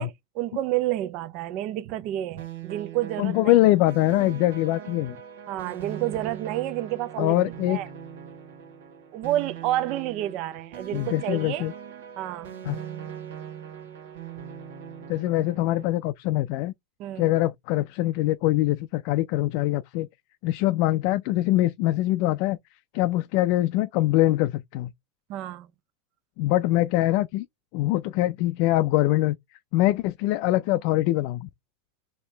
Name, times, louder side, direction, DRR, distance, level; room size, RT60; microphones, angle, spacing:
voice 1, 0.0-3.5 5.5-7.4 7.7-7.9 9.1-11.6 12.2-12.5 17.0-17.3 25.3-25.7, right 14 dB, 55° right, 0.6 m, -29 dB
sound 1, 2.4-15.9, right 9 dB, 80° right, 1.7 m, -40 dB
voice 2, 3.2-5.2 7.2-7.8 10.9-11.7 12.6-12.8 15.1-16.7 17.2-20.1 20.4-22.6 22.9-24.9 26.4-27.5 27.7-29.4 29.7-31.5, left 16 dB, 60° left, 0.3 m, -23 dB
4.3 x 2.8 x 3.3 m
hypercardioid pair, 115°, 0 cm